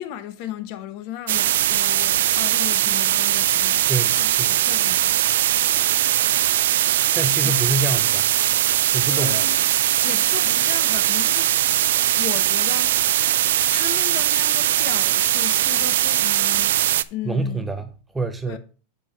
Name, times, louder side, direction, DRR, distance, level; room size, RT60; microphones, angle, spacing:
voice 1, 0.0-5.3 7.4-7.6 9.1-9.6 10.0-11.5 12.2-12.9 13.7-16.8 17.1-17.7 18.5-18.6, left 11 dB, 45° left, 0.9 m, -35 dB
sound 1, 1.3-17.0, right 12 dB, 75° right, 0.4 m, -20 dB
voice 2, 3.9-4.6 7.1-8.3 8.9-9.4 17.3-18.6, right 2 dB, 5° right, 0.5 m, -26 dB
6.5 x 5.1 x 5.7 m
supercardioid pair, 160°, 0 cm